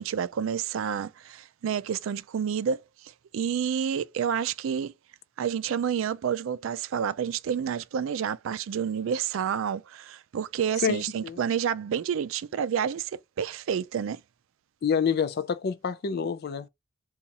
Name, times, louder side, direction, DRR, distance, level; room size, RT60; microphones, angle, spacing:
voice 1, 0.0-2.8 3.3-4.9 5.4-14.2, right 8 dB, 70° right, 0.3 m, -29 dB
voice 2, 10.8-11.4 14.8-16.7, left 6 dB, 50° left, 0.4 m, -27 dB
2.8 x 2.3 x 3.9 m
head